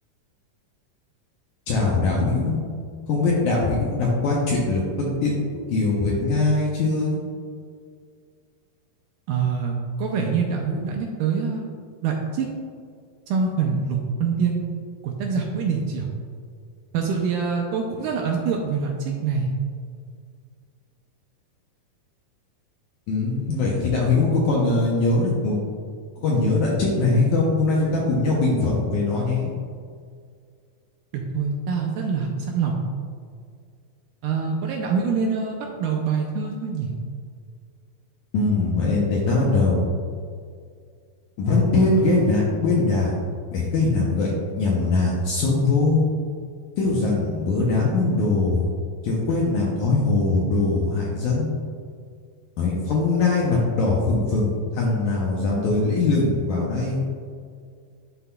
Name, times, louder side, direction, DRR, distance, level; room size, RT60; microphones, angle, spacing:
voice 1, 1.7-2.6 3.1-5.4 5.7-7.2 23.1-25.6 26.2-29.5 38.3-39.8 41.4-43.2 43.5-46.1 46.8-48.7 49.0-51.6 52.6-57.0, left 3 dB, 75° left, -4 dB, 1.8 m, -21 dB
voice 2, 9.3-11.6 12.0-12.5 13.3-14.6 15.0-16.1 16.9-19.5 31.1-32.8 34.2-36.9, right 5 dB, 80° right, 0 dB, 1.9 m, -25 dB
11.0 x 4.0 x 2.2 m, 2.1 s
omnidirectional pair, 4.1 m